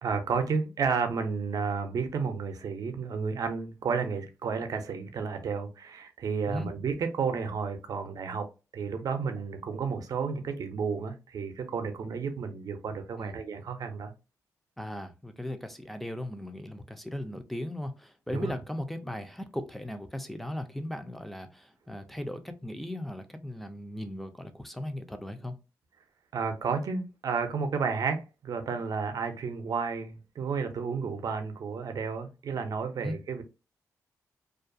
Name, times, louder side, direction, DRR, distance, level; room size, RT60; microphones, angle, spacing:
voice 1, 0.0-8.5 8.7-14.1 18.3-18.5 26.3-33.4, right 5 dB, 65° right, 0.5 m, -32 dB
voice 2, 14.8-25.6 33.0-33.2, left 1 dB, ahead, 0.4 m, -37 dB
2.4 x 2.2 x 2.5 m
cardioid pair, 85°, 7 cm